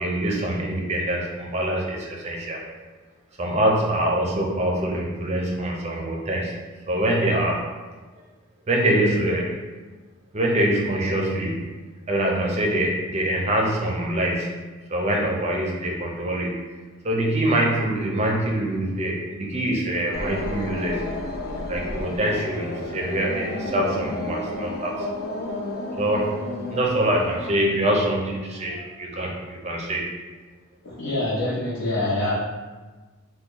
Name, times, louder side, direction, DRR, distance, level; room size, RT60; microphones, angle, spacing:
voice 1, 0.0-2.6 3.4-6.6 6.9-7.6 8.7-9.6 10.3-11.7 12.1-14.6 14.9-16.5 17.0-21.0 21.7-25.1 26.0-26.4 26.7-30.1, right 1 dB, 30° right, -1 dB, 0.5 m, -24 dB
sound 1, 20.1-27.5, left 2 dB, 50° left, 0.4 m, -31 dB
voice 2, 30.8-32.3, left 2 dB, 80° left, -10 dB, 0.7 m, -25 dB
2.9 x 2.2 x 3.7 m, 1.3 s
head